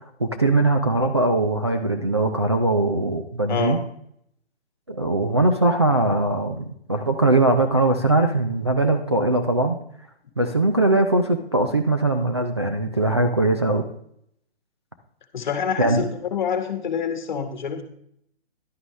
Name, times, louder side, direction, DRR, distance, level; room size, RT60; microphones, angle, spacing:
voice 1, 0.2-3.8 4.9-9.8 10.4-13.8 15.8-16.0, right 2 dB, 25° right, 2 dB, 0.4 m, -21 dB
voice 2, 3.5-3.8 15.3-17.8, left 7 dB, 45° left, 8 dB, 1.4 m, -26 dB
11.0 x 8.7 x 3.1 m, 0.70 s
hypercardioid pair, 160°, 33 cm